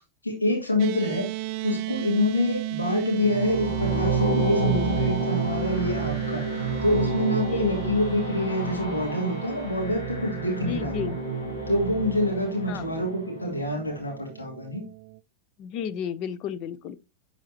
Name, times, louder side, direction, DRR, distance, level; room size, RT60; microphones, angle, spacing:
voice 1, 0.2-1.3 1.6-10.9 11.7-14.8, left 1 dB, 80° left, 2.4 m, -26 dB
sound 1, 0.8-15.2, right 17 dB, 45° right, 0.4 m, -35 dB
sound 2, 3.2-13.3, right 3 dB, 60° left, 2.1 m, -30 dB
voice 2, 4.3-4.9 7.3-8.0 10.6-11.2 12.7-12.9 15.6-17.0, left 9 dB, 40° left, 0.6 m, -33 dB
10.5 x 4.1 x 3.0 m
figure-of-eight pair, 90°, 0 cm